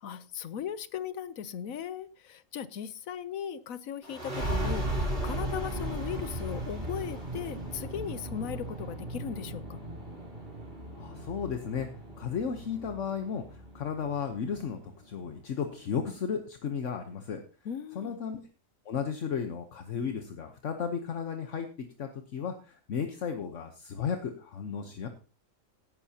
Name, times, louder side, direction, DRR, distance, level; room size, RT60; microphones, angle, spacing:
voice 1, 0.0-9.8 17.6-18.2, left 9 dB, 90° left, 15 dB, 1.2 m, -38 dB
sound 1, 4.0-15.3, right 1 dB, 45° right, 4.0 m, -36 dB
voice 2, 11.0-11.9 12.2-13.4 13.7-14.8 15.1-17.4 17.9-18.4 18.9-21.7 22.0-25.1, left 6 dB, 65° left, 6 dB, 1.3 m, -34 dB
17.0 x 10.5 x 2.8 m, 0.34 s
omnidirectional pair, 1.4 m